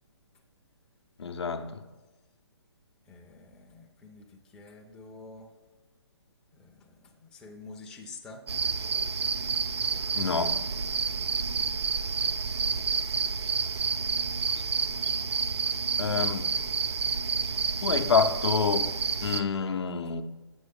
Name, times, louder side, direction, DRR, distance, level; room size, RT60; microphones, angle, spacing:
voice 1, 1.2-1.8 10.2-10.6 16.0-16.5 17.8-18.9 19.2-20.2, left 6 dB, 75° left, 0.6 m, -27 dB
voice 2, 3.0-5.5 6.5-8.4 11.1-11.3, left 3 dB, 5° left, 0.4 m, -48 dB
sound 1, 8.5-19.4, right 5 dB, 70° right, 0.5 m, -29 dB
7.8 x 6.0 x 3.5 m
figure-of-eight pair, 145°, 14 cm